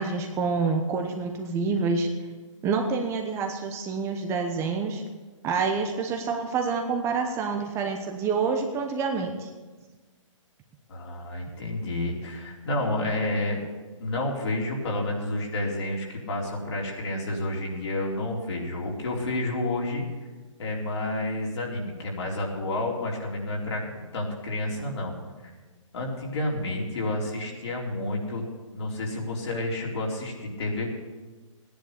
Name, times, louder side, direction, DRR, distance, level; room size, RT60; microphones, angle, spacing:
voice 1, 0.0-2.1 2.6-5.0 5.4-9.5, right 4 dB, 15° right, 3 dB, 1.0 m, -27 dB
voice 2, 10.9-13.7 14.0-20.1 20.6-25.2 25.9-28.4 28.7-30.9, left 1 dB, 60° left, -2 dB, 4.2 m, -30 dB
15.0 x 10.5 x 6.9 m, 1.3 s
hypercardioid pair, 145°, 17 cm